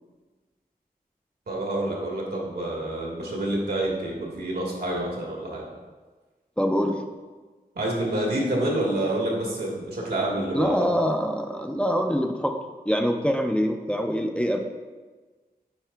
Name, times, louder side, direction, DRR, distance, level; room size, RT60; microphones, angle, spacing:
voice 1, 1.5-5.7 7.7-10.9, right 1 dB, 85° right, -2 dB, 1.4 m, -28 dB
voice 2, 6.6-7.0 10.5-12.5 12.9-14.6, equal, 5° left, 3 dB, 0.4 m, -24 dB
8.7 x 4.8 x 2.3 m, 1.3 s
wide cardioid pair, 85°, 16 cm